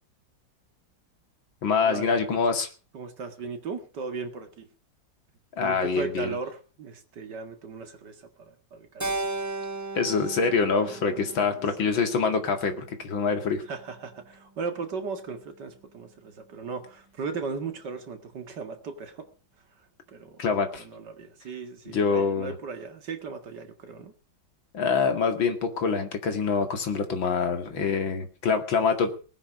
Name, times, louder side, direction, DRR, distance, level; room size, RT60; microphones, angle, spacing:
voice 1, 1.6-2.7 5.6-6.3 9.9-13.6 20.4-20.8 21.9-22.5 24.7-29.1, left 5 dB, 80° left, 6 dB, 2.9 m, -25 dB
voice 2, 2.9-4.7 5.6-9.2 10.1-10.2 10.5-11.6 13.6-19.3 19.8-20.5 20.7-24.1 27.7-28.1, right 4 dB, 60° right, 6 dB, 2.6 m, -37 dB
Keyboard (musical), 9.0-13.4, right 2 dB, 10° right, 0.9 m, -36 dB
19.0 x 9.9 x 6.2 m, 0.37 s
omnidirectional pair, 2.1 m